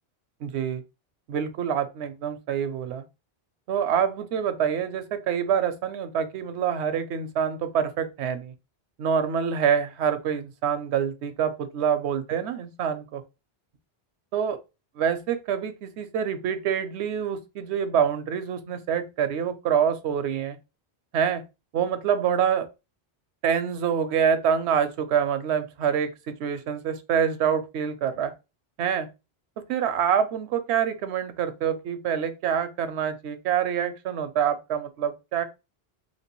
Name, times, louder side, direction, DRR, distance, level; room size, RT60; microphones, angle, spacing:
voice 1, 0.4-0.8 1.3-3.0 3.7-8.5 9.0-13.2 14.3-14.6 15.0-20.6 21.1-21.4 21.7-22.7 23.4-28.3 28.8-29.1 29.7-35.4, right 8 dB, 90° right, 0.9 m, -26 dB
3.1 x 2.9 x 2.9 m
omnidirectional pair, 1.1 m